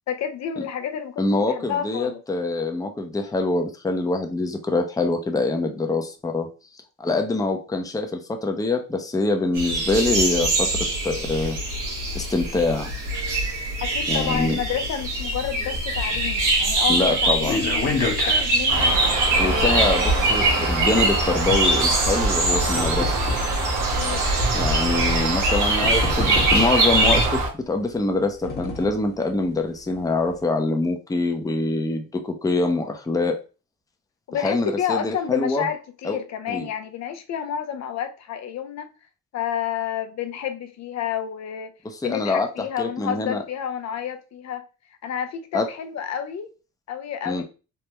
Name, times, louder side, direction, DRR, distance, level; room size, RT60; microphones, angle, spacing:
voice 1, 0.1-1.2 1.5-2.2 13.8-19.0 19.3-20.1 23.8-24.3 34.3-38.9 39.3-41.7 42.0-44.6 45.0-46.5 46.9-47.4, left 9 dB, 60° left, 0.6 m, -30 dB
voice 2, 1.2-6.5 7.0-10.7 11.0-11.6 12.1-12.9 14.1-14.6 16.9-17.7 19.4-23.2 24.5-33.4 34.4-35.6 36.0-36.2 36.5-36.7 41.9-42.5 42.8-43.4 45.5-45.7 47.3-47.4, left 2 dB, 10° left, 0.6 m, -24 dB
sound 1, 9.5-27.2, right 2 dB, 80° right, 1.3 m, -24 dB
sound 2, 15.6-21.1 22.0-23.5 24.3-24.4 25.4-25.5 25.8-27.0 28.0-29.1 29.5-29.6 29.9-30.0, left 2 dB, 35° left, 0.9 m, -30 dB
Bird, 18.7-27.5, right 2 dB, 65° right, 1.0 m, -25 dB
3.4 x 2.1 x 2.9 m
cardioid pair, 90°, 30 cm